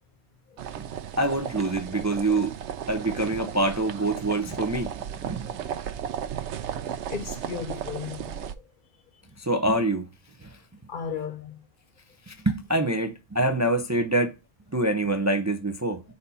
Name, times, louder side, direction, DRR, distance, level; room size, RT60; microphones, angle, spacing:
sound 1, 0.6-8.5, right 9 dB, 90° right, 0.9 m, -35 dB
voice 1, 1.2-2.5 2.9-5.5 9.4-10.0 10.4-10.6 12.3-14.3 14.7-16.0, right 2 dB, 20° right, 0.5 m, -25 dB
voice 2, 5.3-5.7 6.7-6.8 7.1-8.6 10.9-11.6, left 6 dB, 55° left, 0.7 m, -36 dB
4.2 x 4.1 x 5.4 m
omnidirectional pair, 1.1 m